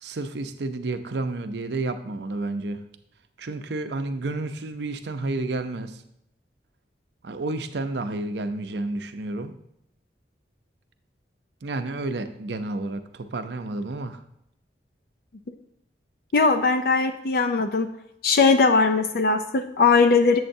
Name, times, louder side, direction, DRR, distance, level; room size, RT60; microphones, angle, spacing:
voice 1, 0.0-2.8 3.4-6.0 7.2-9.5 11.6-14.2, right 2 dB, 75° right, 8 dB, 0.6 m, -30 dB
voice 2, 16.3-17.9 18.2-20.4, left 4 dB, 55° left, 7 dB, 0.4 m, -19 dB
7.8 x 7.6 x 2.7 m, 0.78 s
head